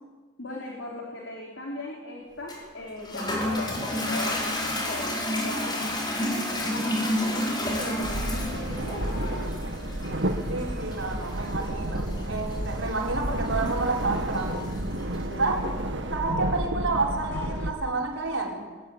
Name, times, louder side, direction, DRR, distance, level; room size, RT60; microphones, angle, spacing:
voice 1, 0.4-5.1 5.4-6.0 6.3-9.5 15.3-15.7, left 2 dB, 75° left, -1 dB, 4.5 m, -38 dB
Toilet flush, 2.5-15.3, left 1 dB, 25° left, 5.0 m, -31 dB
sound 1, 8.0-17.7, right 1 dB, 70° right, 2.0 m, -31 dB
voice 2, 10.5-14.7 15.4-15.6 16.1-18.7, right 3 dB, 90° right, 0 dB, 4.8 m, -29 dB
23.5 x 19.5 x 9.1 m, 1.3 s
head